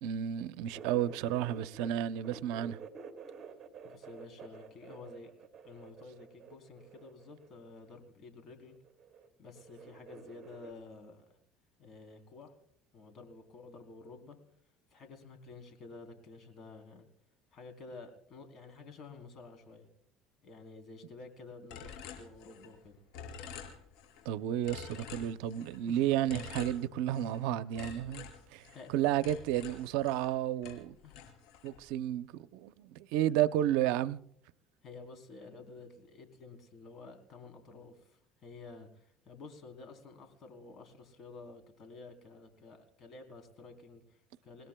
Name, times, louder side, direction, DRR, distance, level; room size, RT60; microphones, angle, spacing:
voice 1, 0.0-2.8 24.2-28.2 28.5-28.7 28.9-31.0 31.6-34.2, right 12 dB, 80° right, 0.6 m, -32 dB
sound 1, 0.7-1.9 2.2-7.7 8.7-9.3 9.5-10.7, right 5 dB, 30° right, 2.8 m, -50 dB
voice 2, 3.8-5.3 5.6-8.8 9.4-11.2 11.8-12.5 12.9-14.4 14.9-17.1 17.5-19.9 20.4-23.0 25.8-26.1 28.1-28.2 28.7-29.0 31.0-31.2 34.8-44.7, left 3 dB, 50° left, 3.6 m, -51 dB
sound 2, 21.7-22.8 23.1-24.3 24.6-25.8 26.3-27.4 27.8-30.4 30.6-31.8, left 6 dB, 75° left, 5.1 m, -47 dB
29.0 x 16.5 x 2.3 m
supercardioid pair, 110°, 0 cm